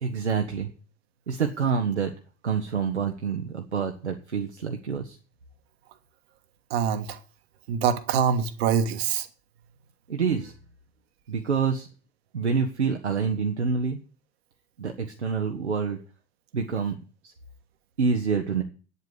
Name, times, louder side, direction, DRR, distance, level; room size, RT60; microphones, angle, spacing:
voice 1, 0.0-0.7 1.3-2.1 2.4-5.2 10.1-10.5 11.3-11.9 12.3-14.0 14.8-16.0 16.5-17.0 17.2-17.3 18.0-18.6, right 5 dB, 80° right, 1.1 m, -27 dB
voice 2, 6.7-7.2 7.7-9.3, right 7 dB, 65° right, 1.4 m, -24 dB
9.1 x 8.2 x 8.1 m
figure-of-eight pair, 70°, 34 cm